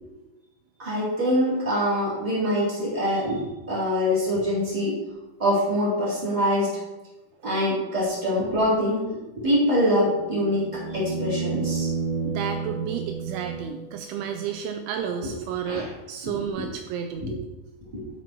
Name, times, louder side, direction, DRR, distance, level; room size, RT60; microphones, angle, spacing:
voice 1, 0.8-3.4 3.7-5.0 5.4-6.7 7.4-11.9 15.7-15.8 17.2-17.3 17.9-18.0, equal, 10° right, -7 dB, 3.2 m, -24 dB
sound 1, 10.0-14.1 16.5-16.6, right 4 dB, 40° right, 0.6 m, -31 dB
voice 2, 12.2-17.4, right 7 dB, 80° right, 6 dB, 2.9 m, -31 dB
12.0 x 5.9 x 4.6 m, 1.0 s
omnidirectional pair, 5.5 m